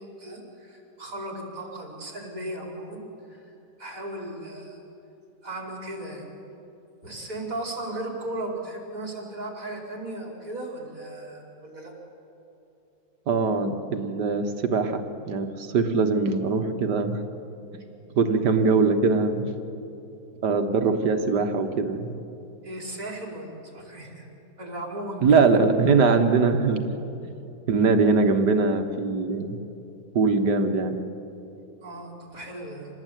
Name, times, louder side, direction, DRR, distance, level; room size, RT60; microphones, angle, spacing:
voice 1, 0.0-3.0 3.3-3.5 3.8-4.8 5.4-6.3 7.0-11.9 22.6-24.3 24.6-25.5 31.8-32.9, right 1 dB, 55° right, 0 dB, 5.3 m, -36 dB
voice 2, 13.3-17.2 18.2-19.5 20.4-22.1 25.2-26.9 27.7-29.6 30.1-31.0, right 4 dB, 85° right, 7 dB, 2.0 m, -22 dB
27.0 x 19.0 x 9.3 m, 2.9 s
omnidirectional pair, 1.8 m